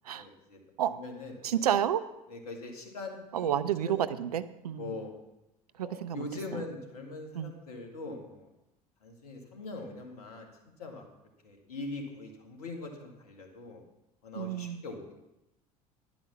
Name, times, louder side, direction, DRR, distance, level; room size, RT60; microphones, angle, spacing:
voice 1, 0.1-0.6 0.9-1.6 2.3-3.5 3.8-4.0 4.8-5.1 5.8-8.5 9.0-10.5 10.8-11.1 11.4-13.8 14.2-15.1, left 3 dB, 75° left, 2 dB, 1.8 m, -42 dB
voice 2, 1.4-2.0 3.3-5.0 5.8-6.3 6.5-6.6 7.3-7.5 14.3-14.8, right 10 dB, 80° right, 14 dB, 0.5 m, -30 dB
10.5 x 5.0 x 7.0 m, 0.92 s
figure-of-eight pair, 65°, 19 cm